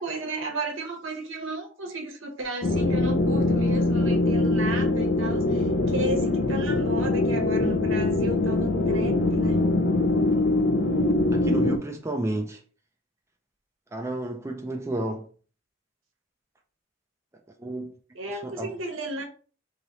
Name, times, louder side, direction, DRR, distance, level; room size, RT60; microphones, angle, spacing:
voice 1, 0.0-9.6 18.1-19.2, right 2 dB, 80° right, 1.1 m, -33 dB
sound 1, 2.6-11.8, left 2 dB, 55° left, 0.6 m, -23 dB
voice 2, 10.9-12.6 13.9-15.3 17.6-17.9 18.3-18.7, right 1 dB, 15° right, 0.4 m, -32 dB
3.3 x 2.8 x 3.9 m
head